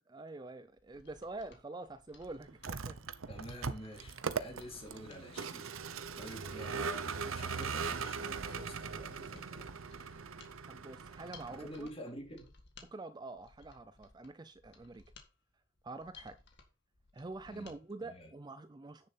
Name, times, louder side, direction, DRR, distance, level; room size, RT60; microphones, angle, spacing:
voice 1, 0.1-3.0 10.7-11.9 12.8-15.0 15.8-16.4 17.1-19.1, right 2 dB, 20° right, 0.4 m, -46 dB
Mechanisms, 0.7-17.8 18.1-18.2, left 4 dB, 55° left, 1.9 m, -61 dB
Vehicle, 2.5-11.9, right 5 dB, 90° right, 0.8 m, -40 dB
voice 2, 3.3-9.7 11.5-12.5 17.5-17.7 18.0-18.3, equal, 30° left, 3.5 m, -49 dB
9.8 x 6.8 x 4.2 m
head